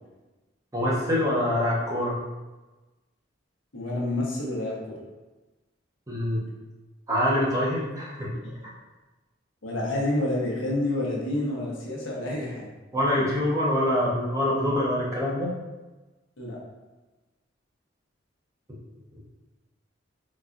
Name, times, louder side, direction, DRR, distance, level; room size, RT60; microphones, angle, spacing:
voice 1, 0.7-2.1 6.1-6.4 7.1-8.3 12.9-15.5, left 1 dB, 15° right, -6 dB, 0.7 m, -25 dB
voice 2, 3.7-5.0 8.4-8.6 9.6-12.7 13.2-13.3 16.4-16.6, left 1 dB, 85° left, -4 dB, 0.8 m, -29 dB
4.1 x 2.3 x 2.4 m, 1.2 s
head